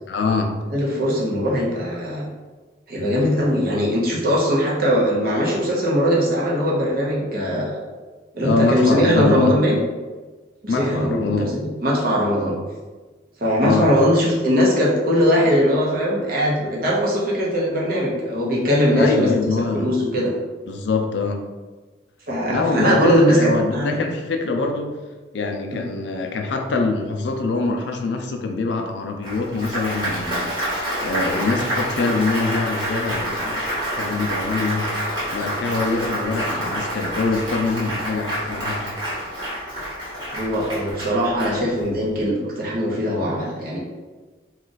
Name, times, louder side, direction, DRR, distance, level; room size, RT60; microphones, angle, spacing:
voice 1, 0.1-0.6 8.4-9.5 10.7-11.5 13.6-13.9 18.9-19.9 20.7-21.4 22.5-24.9 25.3-30.5 31.0-33.6 34.0-34.9 35.3-39.0, left 3 dB, 70° left, 4 dB, 0.4 m, -24 dB
voice 2, 0.7-2.3 2.9-7.8 8.3-9.8 10.6-12.6 13.4-19.3 19.7-20.3 22.3-24.1 25.7-25.8 40.3-43.8, equal, 50° right, -4 dB, 0.8 m, -20 dB
Applause, 29.2-42.0, equal, 25° right, 1.1 m, -27 dB
2.4 x 2.4 x 3.9 m, 1.3 s
head